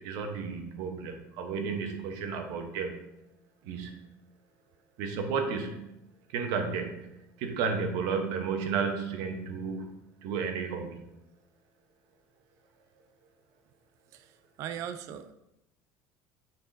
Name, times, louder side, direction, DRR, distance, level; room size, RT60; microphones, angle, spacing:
voice 1, 0.0-3.0 3.6-4.0 5.0-5.8 6.3-7.1 7.4-9.9 10.2-11.0, right 5 dB, 75° right, 5 dB, 1.0 m, -32 dB
voice 2, 14.6-15.3, right 9 dB, 55° right, 10 dB, 0.5 m, -38 dB
9.1 x 4.4 x 2.7 m, 0.88 s
cardioid pair, 140°, 6 cm